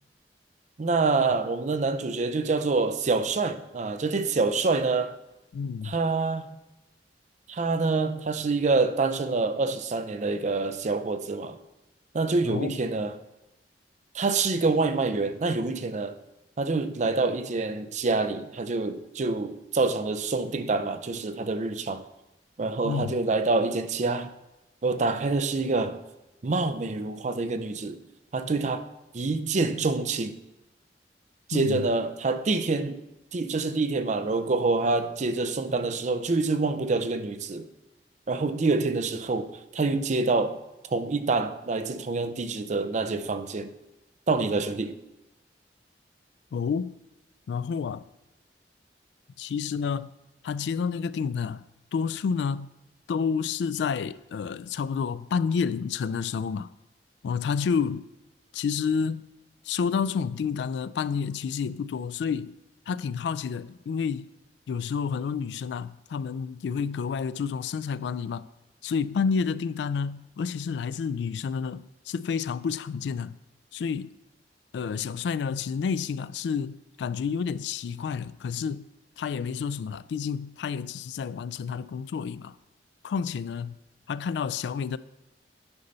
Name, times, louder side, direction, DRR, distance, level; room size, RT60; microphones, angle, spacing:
voice 1, 0.8-5.1 5.8-6.6 7.5-11.6 12.1-13.2 14.1-16.2 16.6-22.0 22.6-24.3 24.8-26.0 26.4-28.0 28.3-28.9 29.1-30.3 31.5-33.0 33.3-37.7 38.3-40.6 40.9-43.7 44.3-45.0, right 3 dB, 45° right, 0.5 m, -26 dB
voice 2, 5.5-6.0 12.4-12.8 22.8-23.2 31.5-31.8 46.5-47.0 47.5-48.1 49.4-50.2 50.4-51.7 51.9-52.7 53.1-56.7 57.2-58.1 58.5-59.3 59.6-62.6 62.9-64.3 64.7-68.5 68.8-73.4 73.7-74.1 74.7-78.9 79.2-82.6 83.0-83.8 84.1-85.0, left 6 dB, 75° left, 0.3 m, -29 dB
9.7 x 5.5 x 4.0 m
head